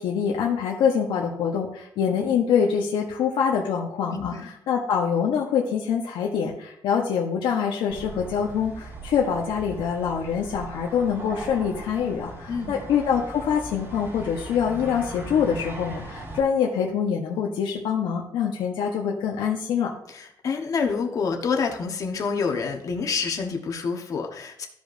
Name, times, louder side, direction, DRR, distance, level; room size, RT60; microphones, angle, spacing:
voice 1, 0.0-4.3 4.7-19.9, left 7 dB, 80° left, -1 dB, 1.1 m, -25 dB
voice 2, 4.1-4.5 12.5-12.8 20.1-24.7, left 5 dB, 45° left, 3 dB, 1.2 m, -27 dB
sound 1, 7.9-16.4, right 2 dB, 30° right, 2.2 m, -39 dB
14.5 x 5.2 x 2.7 m, 0.70 s
cardioid pair, 155°, 8 cm